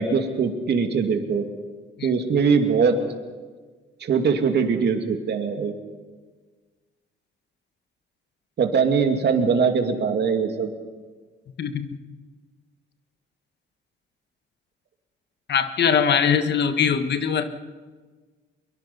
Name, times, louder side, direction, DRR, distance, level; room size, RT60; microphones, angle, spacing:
voice 1, 0.0-1.5 2.0-3.0 4.0-5.7 8.6-10.7, right 5 dB, 55° right, 4 dB, 2.5 m, -21 dB
voice 2, 11.6-11.9 15.5-17.4, left 7 dB, 60° left, 9 dB, 1.5 m, -21 dB
22.5 x 22.5 x 5.5 m, 1.4 s
cardioid pair, 90°, 20 cm